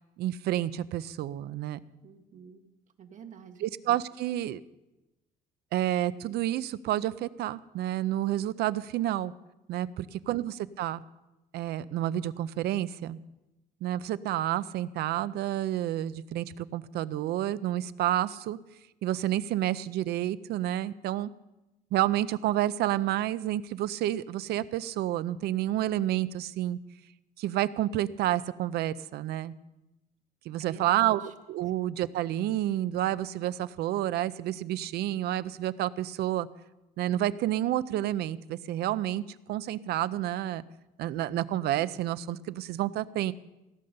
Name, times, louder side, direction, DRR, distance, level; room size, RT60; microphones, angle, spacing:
voice 1, 0.2-1.8 3.6-4.6 5.7-9.3 9.7-11.0 11.5-13.2 13.8-18.6 19.0-21.3 21.9-26.8 27.4-29.5 30.5-36.5 37.0-39.2 39.5-40.6 41.0-43.3, right 13 dB, 75° right, 16 dB, 0.6 m, -29 dB
voice 2, 2.0-2.6 3.0-3.7 10.0-10.1 30.6-31.3, right 6 dB, 45° right, 6 dB, 1.5 m, -49 dB
16.5 x 8.6 x 6.7 m, 0.99 s
cardioid pair, 110°, 17 cm